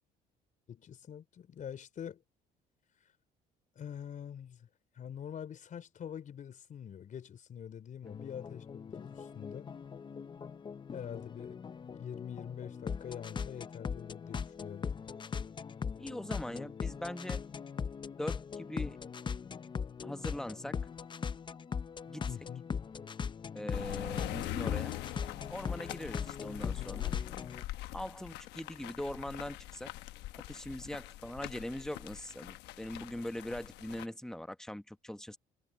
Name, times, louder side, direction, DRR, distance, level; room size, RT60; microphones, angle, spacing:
voice 1, 0.7-2.2 3.8-4.7 5.0-9.7 10.9-11.6 11.9-14.9 22.3-22.6, left 8 dB, 50° left, 4.2 m, -45 dB
sound 1, 8.0-27.6, left 6 dB, 30° left, 0.6 m, -40 dB
voice 2, 16.0-17.4 18.2-19.0 20.0-20.8 22.1-22.3 23.5-24.9 25.5-27.2 27.9-29.9 30.4-35.4, left 1 dB, 5° left, 1.2 m, -41 dB
sound 2, 23.7-34.0, left 16 dB, 90° left, 1.1 m, -42 dB
cardioid pair, 110°, 17 cm